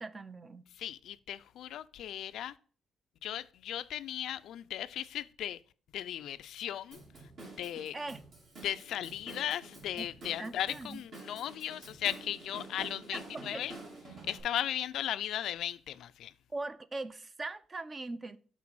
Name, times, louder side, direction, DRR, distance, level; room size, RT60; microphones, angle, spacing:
voice 1, 0.0-0.7 7.9-8.2 10.0-10.1 10.4-11.0 13.3-13.6 16.5-18.4, right 2 dB, 30° right, 0.5 m, -40 dB
voice 2, 0.8-2.5 3.2-5.6 5.9-7.0 7.4-8.0 8.6-13.7 14.2-16.3, left 11 dB, 75° left, 0.3 m, -37 dB
Drum kit / Drum, 6.9-14.4, right 2 dB, 60° right, 3.1 m, -49 dB
6.0 x 3.9 x 6.1 m
cardioid pair, 90°, 0 cm